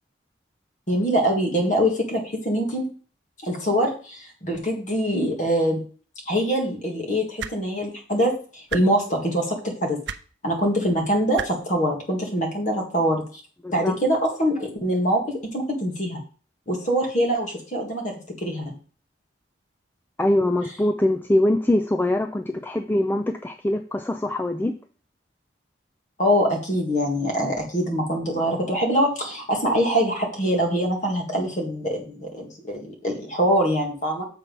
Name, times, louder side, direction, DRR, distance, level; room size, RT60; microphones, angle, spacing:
voice 1, 0.9-2.9 3.4-5.8 6.3-10.0 10.4-13.2 13.7-15.2 15.5-16.2 16.7-18.7 26.2-34.2, equal, 40° left, 1 dB, 2.0 m, -24 dB
sound 1, 7.4-7.5 8.7-8.8 10.0-10.2 11.3-11.5 12.7-12.8, right 7 dB, 65° right, 0.5 m, -30 dB
voice 2, 13.6-14.0 20.2-24.7, left 1 dB, 10° left, 6 dB, 0.3 m, -23 dB
7.5 x 4.2 x 5.3 m, 0.40 s
head